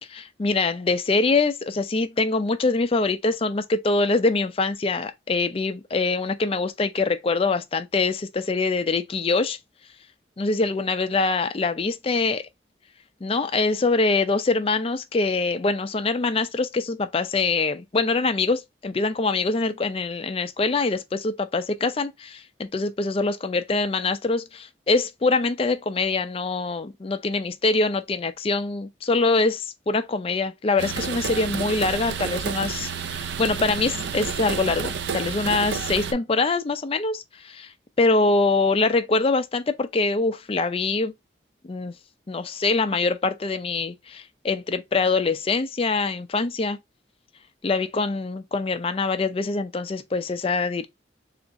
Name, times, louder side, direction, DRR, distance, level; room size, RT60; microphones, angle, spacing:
voice 1, 0.1-9.6 10.4-12.4 13.2-37.7 38.0-41.1 41.6-41.9 42.3-46.8 47.6-50.9, left 3 dB, 30° left, 0.4 m, -24 dB
sound 1, 30.8-36.1, right 6 dB, 70° right, 0.4 m, -30 dB
3.5 x 2.5 x 3.9 m
head